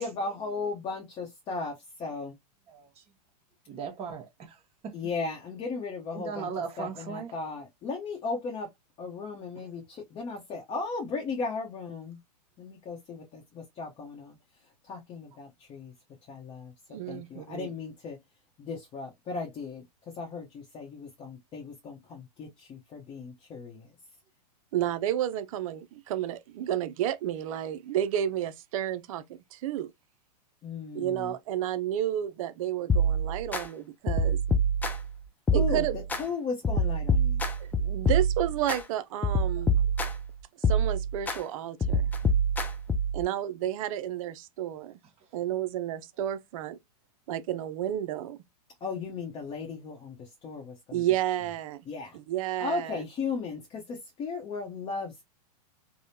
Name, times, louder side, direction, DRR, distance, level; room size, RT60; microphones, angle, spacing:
voice 1, 0.0-1.7 2.0-2.3 4.9-6.5 6.8-8.7 9.0-12.2 12.6-14.3 14.9-15.9 16.3-16.7 17.1-18.2 18.6-19.8 20.2-23.9 30.6-31.3 35.5-35.8 36.2-37.4 48.8-51.0 51.9-52.2 52.6-55.3, left 4 dB, 25° left, 0.8 m, -36 dB
voice 2, 2.7-3.0 3.7-4.9 6.1-7.4 9.5-9.7 39.6-40.1 45.0-45.3, right 6 dB, 30° right, 1.1 m, -39 dB
voice 3, 16.9-17.7 24.7-29.9 30.9-34.4 35.5-36.0 37.6-39.9 40.6-42.1 43.1-45.0 45.3-46.8 47.3-48.4 50.9-51.8 52.1-53.0, right 11 dB, 55° right, 0.5 m, -31 dB
sound 1, 32.9-33.6 34.1-35.1 35.5-36.2 36.6-38.8 39.2-40.3 40.6-41.4 41.8-43.2, right 1 dB, 10° left, 0.3 m, -26 dB
3.4 x 2.1 x 2.7 m
hypercardioid pair, 130°, 21 cm